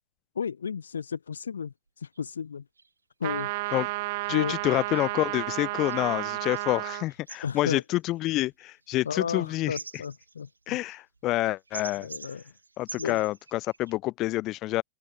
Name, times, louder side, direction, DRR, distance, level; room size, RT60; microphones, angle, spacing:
voice 1, 0.3-2.6 3.2-3.5 4.3-4.5 7.4-7.8 9.0-10.8 12.0-12.4 13.0-13.2, left 6 dB, 70° left, 1.1 m, -33 dB
sound 1, 1.9-2.0 2.1-2.3 2.8-2.9 3.4-13.9, right 4 dB, 80° right, 1.5 m, -47 dB
sound 2, 3.2-7.1, right 22 dB, 50° right, 1.4 m, -32 dB
voice 2, 4.3-9.8 10.7-12.1 12.8-14.8, left 17 dB, 35° left, 0.4 m, -28 dB
open air
figure-of-eight pair, 90°, 0 cm